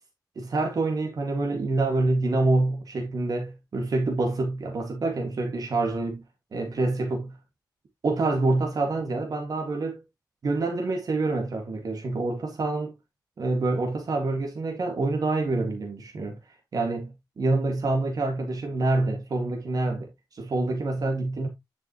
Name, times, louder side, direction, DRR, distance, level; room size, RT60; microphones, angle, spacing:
voice 1, 0.4-6.2 6.5-7.3 8.0-10.0 10.4-12.9 13.4-16.4 16.7-21.5, right 2 dB, 55° right, 1.9 m, -26 dB
10.5 x 5.5 x 2.9 m
wide cardioid pair, 135°, 8 cm